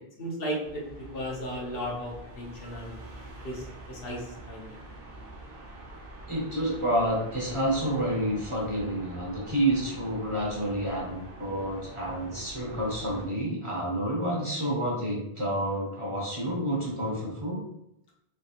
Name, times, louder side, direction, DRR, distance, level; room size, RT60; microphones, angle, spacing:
voice 1, 0.2-3.0 3.4-4.8, equal, 65° left, -3 dB, 1.1 m, -35 dB
sound 1, 0.6-13.3, right 1 dB, 60° right, 0.9 m, -45 dB
voice 2, 6.3-17.6, right 1 dB, 30° right, -4 dB, 0.8 m, -29 dB
3.3 x 2.8 x 2.9 m, 0.81 s
omnidirectional pair, 1.0 m